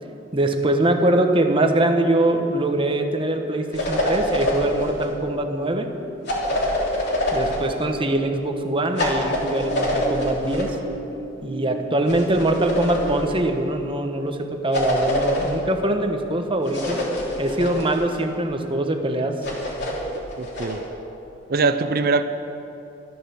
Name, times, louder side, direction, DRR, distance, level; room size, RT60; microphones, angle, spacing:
voice 1, 0.3-5.9 7.3-10.8 11.4-17.0 17.4-19.4, right 1 dB, 30° right, 5 dB, 1.1 m, -23 dB
sound 1, 3.3-13.3, right 2 dB, 85° right, 2.3 m, -38 dB
sound 2, 3.7-5.1 6.3-7.7 9.0-10.7 12.1-13.4 14.7-15.6 16.7-18.2 19.4-20.8, left 1 dB, 60° left, 3.2 m, -25 dB
voice 2, 20.4-20.8 21.5-22.2, right 4 dB, 55° right, 10 dB, 0.6 m, -22 dB
12.5 x 12.5 x 7.0 m, 2.8 s
head